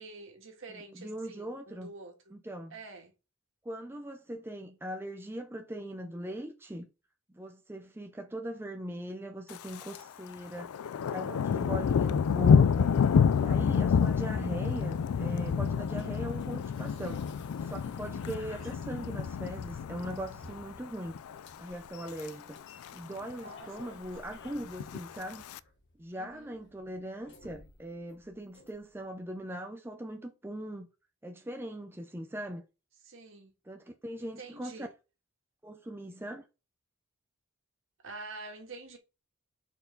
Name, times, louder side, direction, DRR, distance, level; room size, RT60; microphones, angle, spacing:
voice 1, 0.0-2.3 2.7-3.1 18.8-18.9 23.3-24.4 26.2-26.5 33.0-33.5 34.2-34.9 38.0-39.0, right 3 dB, 65° right, 1.8 m, -47 dB
voice 2, 0.7-1.9 2.3-2.8 3.6-6.9 7.3-10.7 11.1-12.9 13.3-17.2 17.6-21.2 21.6-22.6 22.9-25.4 26.0-30.9 31.2-32.6 33.7-34.9 35.6-36.5, right 1 dB, 10° right, 0.6 m, -40 dB
Thunder, 9.5-10.0 10.3-20.7 21.1-21.4 21.9-22.3 22.6-22.7 22.8-22.9 23.3-23.9 24.7-25.6, left 6 dB, 85° left, 0.4 m, -28 dB
sound 1, 15.9-29.1, left 2 dB, 55° left, 1.3 m, -55 dB
6.4 x 4.6 x 3.9 m
head